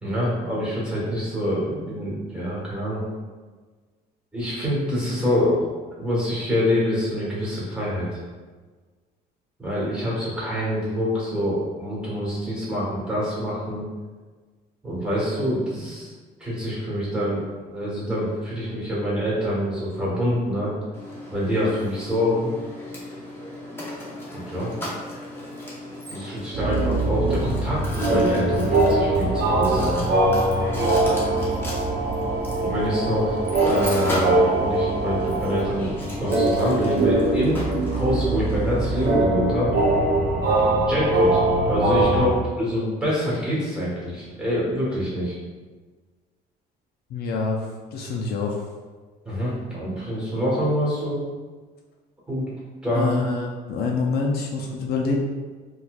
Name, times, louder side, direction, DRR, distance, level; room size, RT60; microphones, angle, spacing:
voice 1, 0.0-3.0 4.3-5.6 6.0-8.2 9.6-13.9 14.8-16.1 16.4-20.7 21.3-22.5 24.3-24.7 26.1-30.0 32.6-35.9 36.2-37.6 37.9-39.7 40.6-45.3 49.2-51.2 52.3-52.5 52.8-53.1, equal, 5° right, -7 dB, 1.4 m, -26 dB
Mechanisms, 20.9-39.1, left 1 dB, 15° left, 0.9 m, -36 dB
sound 1, 26.5-42.3, right 2 dB, 75° right, 0.8 m, -22 dB
voice 2, 47.1-47.6 47.9-48.6 52.9-55.2, left 4 dB, 70° left, 0 dB, 0.4 m, -26 dB
4.1 x 2.3 x 2.4 m, 1.4 s
cardioid pair, 110°, 17 cm